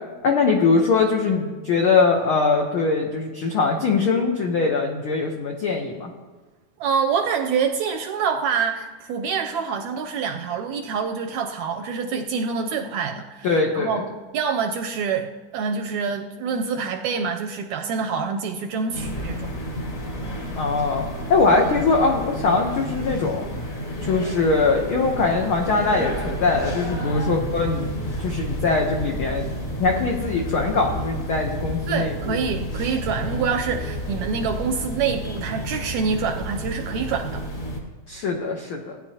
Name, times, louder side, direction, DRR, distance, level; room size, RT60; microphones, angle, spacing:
voice 1, 0.2-6.1 13.4-14.0 20.5-23.5 24.0-27.9 28.2-29.5 29.8-32.4 33.2-33.4 38.1-39.0, left 4 dB, 85° left, 1 dB, 1.1 m, -22 dB
voice 2, 6.8-14.1 14.3-19.5 31.9-37.5, right 6 dB, 80° right, 5 dB, 1.7 m, -26 dB
sound 1, 18.9-37.8, equal, 30° left, 1.7 m, -31 dB
18.0 x 10.0 x 2.8 m, 1.3 s
omnidirectional pair, 3.7 m